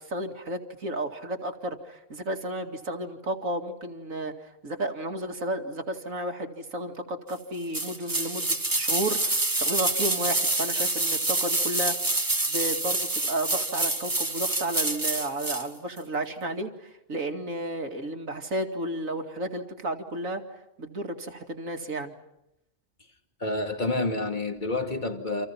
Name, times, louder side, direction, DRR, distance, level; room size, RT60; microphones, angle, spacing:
voice 1, 0.1-12.0 12.4-20.4 20.8-22.1, right 1 dB, 85° right, 2.8 m, -32 dB
sound 1, 7.7-15.7 16.0-16.1, right 2 dB, 15° right, 1.2 m, -27 dB
voice 2, 23.4-25.5, left 2 dB, 35° left, 2.6 m, -28 dB
29.5 x 27.5 x 5.8 m
omnidirectional pair, 1.4 m